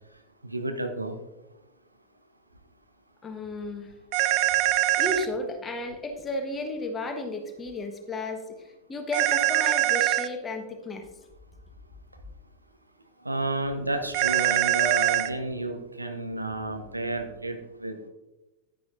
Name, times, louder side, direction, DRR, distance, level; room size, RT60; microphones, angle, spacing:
voice 1, 0.4-1.2 13.2-18.1, right 2 dB, 85° right, 6 dB, 0.9 m, -31 dB
voice 2, 3.2-3.9 5.0-11.1, left 2 dB, 20° left, 5 dB, 1.2 m, -33 dB
sound 1, 4.1-5.3 9.1-10.3 14.1-15.3, right 16 dB, 45° right, 0.4 m, -23 dB
10.0 x 9.8 x 2.5 m, 1.1 s
figure-of-eight pair, 90°, 0 cm